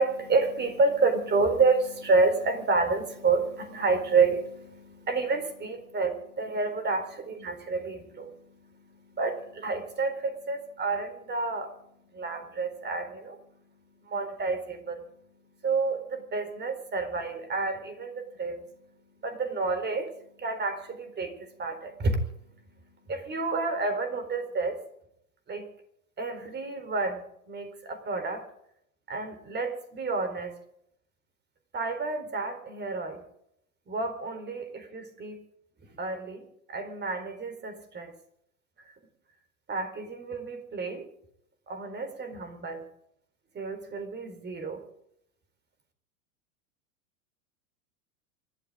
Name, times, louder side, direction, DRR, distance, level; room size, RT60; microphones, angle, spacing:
voice 1, 0.0-24.8 25.5-25.7 26.2-28.4 29.1-30.6 31.7-33.2 33.9-35.4 36.0-38.1 38.8-38.9 39.7-41.1 41.7-42.9 43.5-44.8, right 3 dB, 25° right, 7 dB, 4.2 m, -30 dB
28.0 x 12.5 x 4.0 m, 0.74 s
hypercardioid pair, 100°, 44 cm